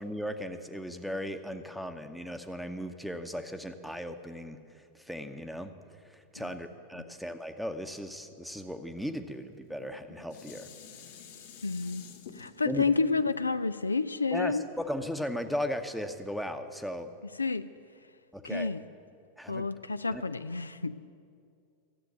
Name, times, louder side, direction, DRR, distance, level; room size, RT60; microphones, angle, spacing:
voice 1, 0.0-5.7 6.0-10.7 12.6-12.9 14.3-17.1 18.3-18.7 19.4-19.7 20.1-20.2, equal, ahead, 7 dB, 0.9 m, -37 dB
Dishes pots and pans, 9.7-15.0 15.5-15.6, left 7 dB, 55° left, 1.6 m, -51 dB
voice 2, 11.6-12.1 12.3-14.6 17.4-17.7 18.4-18.8 19.5-21.0, left 4 dB, 80° left, 12 dB, 0.4 m, -30 dB
13.5 x 8.1 x 9.4 m, 2.3 s
figure-of-eight pair, 90°, 0 cm